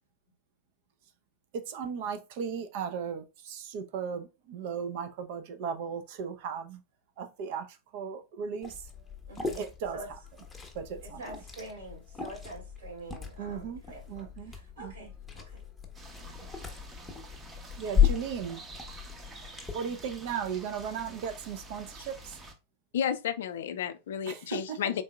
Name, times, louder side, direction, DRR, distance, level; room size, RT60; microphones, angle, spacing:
voice 1, 1.5-6.8 7.2-8.9 9.6-10.0 10.7-11.2 11.6-11.7 13.4-15.1 16.2-16.3 17.8-18.6 19.7-22.4 24.3-24.8, right 7 dB, 50° right, 0.6 m, -36 dB
Liquid, 8.6-19.7, left 8 dB, 10° left, 0.9 m, -34 dB
voice 2, 9.3-9.6 9.9-10.1 11.0-15.1 15.4-15.6 16.2-16.3, right 2 dB, 70° right, 2.4 m, -46 dB
sound 1, 15.9-22.5, right 1 dB, 20° right, 0.8 m, -48 dB
voice 3, 22.9-25.0, left 8 dB, 60° left, 0.4 m, -32 dB
4.0 x 3.6 x 2.2 m
figure-of-eight pair, 90°, 0 cm